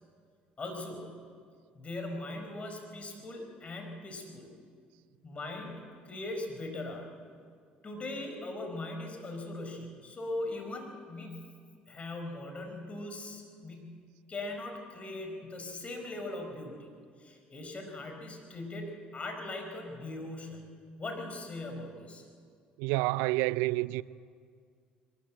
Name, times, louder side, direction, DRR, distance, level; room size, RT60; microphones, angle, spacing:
voice 1, 0.6-1.1 1.7-4.5 5.2-7.1 7.8-11.6 11.9-14.0 14.3-16.9 17.2-20.6 21.0-22.2, left 2 dB, 35° left, 4.8 m, -40 dB
voice 2, 22.8-24.0, right 20 dB, 85° right, 0.4 m, -28 dB
22.0 x 13.5 x 8.9 m
supercardioid pair, 70°, 4 cm